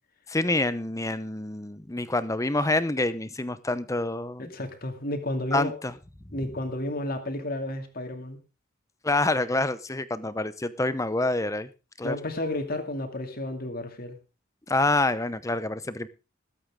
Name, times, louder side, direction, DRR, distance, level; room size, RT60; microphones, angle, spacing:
voice 1, 0.3-4.5 5.5-5.9 9.0-11.7 12.0-12.1 14.7-16.1, left 2 dB, 15° left, 0.8 m, -27 dB
voice 2, 4.4-5.8 6.3-8.4 12.0-14.2, left 1 dB, 45° left, 2.4 m, -32 dB
20.5 x 8.7 x 3.7 m
head